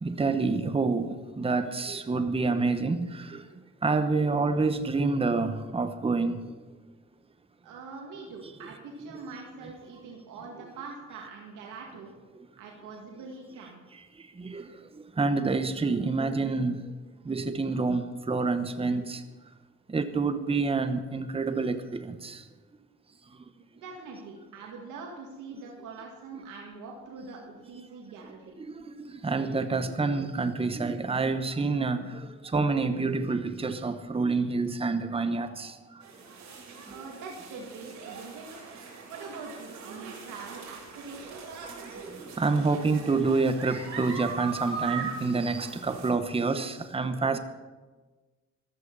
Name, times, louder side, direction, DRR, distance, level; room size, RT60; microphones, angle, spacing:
voice 1, 0.0-3.4 3.8-6.5 9.0-9.1 13.9-14.0 14.4-16.9 17.2-19.2 19.9-22.4 28.6-35.8 36.9-37.0 41.6-47.4, right 3 dB, 20° right, 1.0 m, -28 dB
voice 2, 7.6-12.1 12.6-13.8 23.7-28.6 36.9-38.4 39.1-41.6, right 4 dB, 85° right, 2.1 m, -43 dB
sound 1, 36.0-46.1, right 5 dB, 65° right, 4.2 m, -40 dB
14.0 x 13.0 x 5.4 m
cardioid pair, 90°, 30 cm